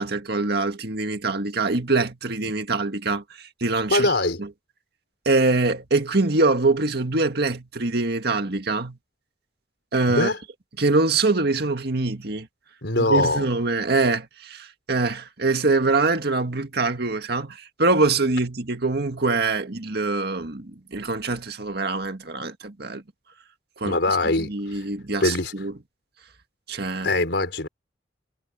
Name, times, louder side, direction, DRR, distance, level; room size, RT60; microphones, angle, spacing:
voice 1, 0.0-4.1 4.4-4.5 5.3-9.0 9.9-10.3 10.8-12.5 12.9-23.0 23.8-24.0 24.2-25.7 26.7-27.1, right 3 dB, 60° right, 1.9 m, -24 dB
voice 2, 3.9-4.4 10.1-10.4 12.8-13.5 23.8-24.8 25.2-25.5 27.0-27.7, left 2 dB, 70° left, 5.1 m, -22 dB
head